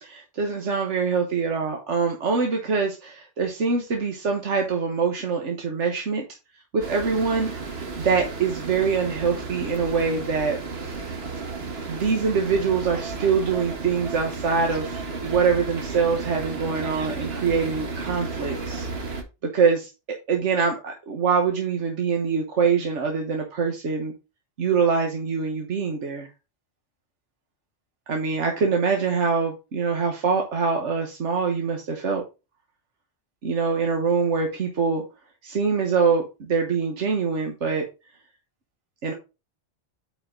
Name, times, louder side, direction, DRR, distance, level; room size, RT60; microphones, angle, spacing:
voice 1, 0.0-6.2 6.7-11.0 11.9-18.9 19.4-19.9 20.3-24.1 24.6-26.3 28.1-32.2 33.4-35.0 35.4-37.9 39.0-39.1, right 5 dB, 85° right, 2 dB, 1.6 m, -24 dB
sound 1, 6.8-19.2, right 4 dB, 65° right, 1.6 m, -33 dB
8.9 x 4.9 x 3.8 m, 0.28 s
omnidirectional pair, 1.2 m